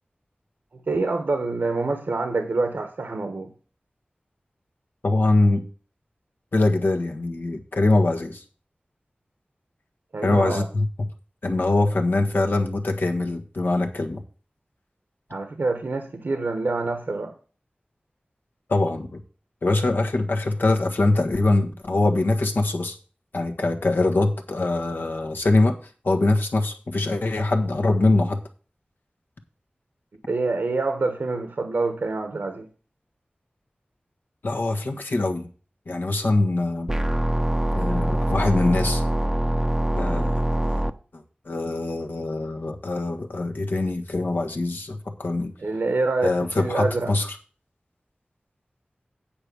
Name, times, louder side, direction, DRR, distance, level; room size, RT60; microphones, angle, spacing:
voice 1, 0.9-3.5 10.1-10.6 15.3-17.3 30.3-32.7 45.6-47.1, right 3 dB, 85° right, 6 dB, 1.0 m, -26 dB
voice 2, 5.0-5.6 6.5-8.4 10.2-10.9 11.4-14.2 18.7-19.1 19.6-22.9 23.3-25.7 26.0-28.4 34.4-35.5 35.9-36.9 37.7-39.0 39.9-40.8 41.4-45.5 46.2-47.3, left 2 dB, 80° left, 4 dB, 1.4 m, -23 dB
sound 1, 36.9-40.9, right 1 dB, 10° right, 0.6 m, -23 dB
8.8 x 4.9 x 6.8 m, 0.38 s
wide cardioid pair, 70°, 3 cm